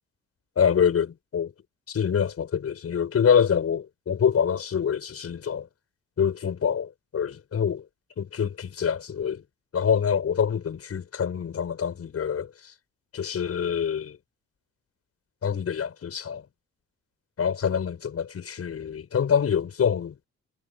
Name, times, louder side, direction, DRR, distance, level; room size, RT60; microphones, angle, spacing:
voice 1, 0.6-1.5 1.9-5.7 6.2-7.8 8.2-9.4 9.7-12.7 13.1-14.2 15.4-16.4 17.4-20.2, left 7 dB, 50° left, 6.9 m, -25 dB
cardioid pair, 90°, 30 cm